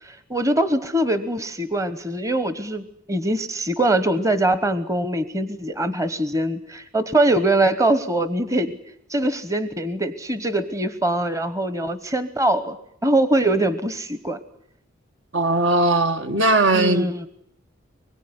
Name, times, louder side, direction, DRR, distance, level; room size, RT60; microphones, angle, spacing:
voice 1, 0.0-8.7 9.1-12.8 13.0-14.4 16.7-17.3, right 1 dB, 15° right, 1.1 m, -22 dB
voice 2, 15.3-17.3, right 2 dB, 60° right, 1.6 m, -19 dB
24.5 x 21.5 x 9.7 m
head